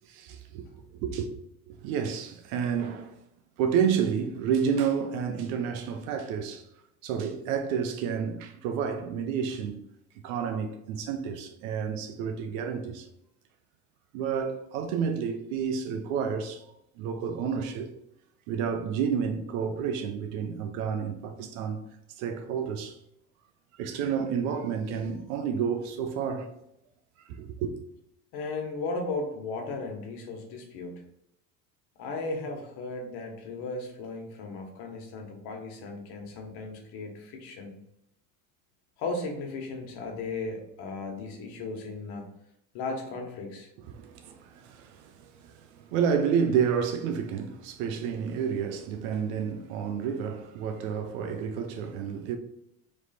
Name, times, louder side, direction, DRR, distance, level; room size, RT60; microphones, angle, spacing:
voice 1, 0.1-0.7 1.0-1.3 1.7-3.1 3.6-6.6 7.0-9.8 10.2-13.1 14.1-16.6 17.0-17.9 18.5-21.8 22.2-23.0 23.8-26.5 27.4-27.7 43.9-52.4, right 7 dB, 80° right, 0.8 m, -30 dB
voice 2, 28.3-31.0 32.0-37.8 39.0-42.3 42.7-43.7, left 3 dB, 65° left, 1.3 m, -36 dB
3.2 x 3.2 x 4.2 m
supercardioid pair, 95°, 41 cm